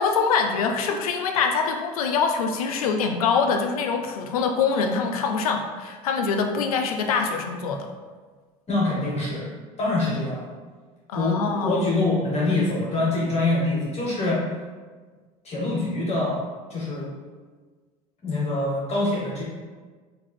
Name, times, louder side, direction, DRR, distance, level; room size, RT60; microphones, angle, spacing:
voice 1, 0.0-7.9 11.1-11.8, left 5 dB, 85° left, 4 dB, 0.4 m, -24 dB
voice 2, 8.7-9.4 9.8-10.5 11.1-14.4 15.4-16.4 16.7-17.1 18.2-19.4, left 2 dB, 35° left, -5 dB, 1.2 m, -24 dB
3.5 x 2.5 x 3.2 m, 1.5 s
hypercardioid pair, 75°, 18 cm